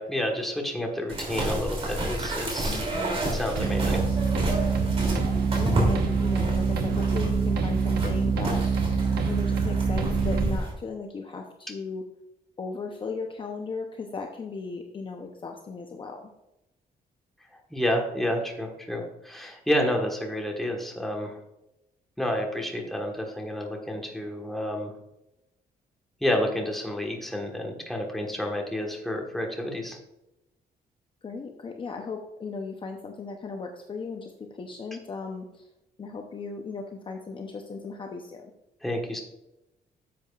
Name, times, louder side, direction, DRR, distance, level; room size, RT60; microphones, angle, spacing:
voice 1, 0.0-2.8 3.3-4.0 17.7-21.4 22.2-24.9 26.2-30.0 38.8-39.2, left 1 dB, ahead, 1 dB, 1.4 m, -29 dB
sound 1, 1.1-10.7, right 1 dB, 35° right, 3.0 m, -31 dB
voice 2, 2.7-3.2 5.1-8.6 9.3-12.1 12.6-16.3 31.2-35.7 36.0-38.5, left 4 dB, 30° left, 3 dB, 0.7 m, -37 dB
sound 2, 3.6-10.6, right 5 dB, 85° right, 1.2 m, -25 dB
10.5 x 7.4 x 2.4 m, 0.91 s
cardioid pair, 150°, 16 cm